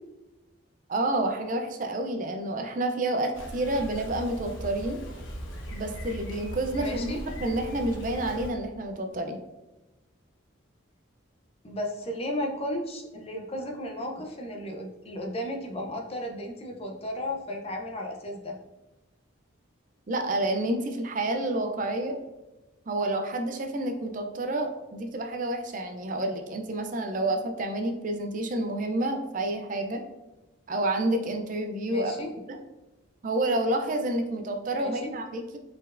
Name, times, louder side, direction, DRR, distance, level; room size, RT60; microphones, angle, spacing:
voice 1, 0.9-5.0 5.7-7.1 7.4-9.4 20.1-22.2 22.9-30.0 30.7-32.1 32.5-32.6 33.2-35.6, right 1 dB, 40° right, 5 dB, 0.4 m, -29 dB
Bicycle, 3.3-8.5, equal, 70° left, 1.0 m, -39 dB
voice 2, 6.8-7.2 11.6-18.6 21.8-21.9 31.9-32.3 34.7-35.1, left 1 dB, 30° left, 2 dB, 0.5 m, -34 dB
4.2 x 4.1 x 2.5 m, 1.0 s
head